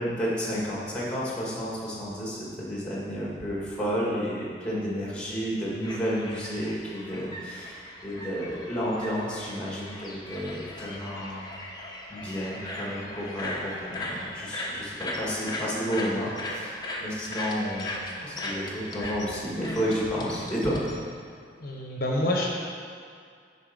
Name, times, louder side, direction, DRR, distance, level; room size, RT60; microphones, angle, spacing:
voice 1, 0.0-11.5 12.1-18.0 18.2-20.8, equal, 5° left, -5 dB, 1.9 m, -31 dB
sound 1, 5.8-21.0, left 1 dB, 25° left, 0.9 m, -38 dB
voice 2, 21.6-22.5, left 1 dB, 55° left, -2 dB, 1.0 m, -27 dB
10.5 x 4.2 x 5.4 m, 2.2 s
head